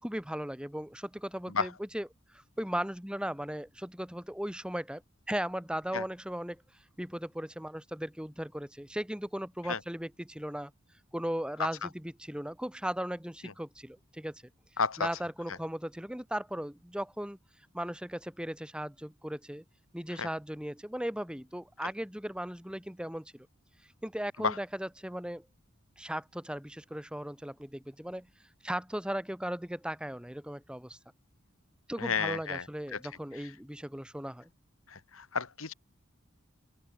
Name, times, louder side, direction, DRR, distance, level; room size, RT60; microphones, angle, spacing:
voice 1, 0.0-2.1 2.3-5.0 5.3-6.6 7.0-10.7 11.1-14.4 15.0-17.4 17.7-19.6 19.9-23.5 24.0-25.5 26.0-28.3 28.6-31.0 31.9-34.5, equal, 5° right, 2.5 m, -37 dB
voice 2, 14.8-15.1 20.2-20.3 24.4-24.6 32.0-32.6 32.9-33.0 34.9-35.7, left 5 dB, 90° left, 1.9 m, -31 dB
open air
head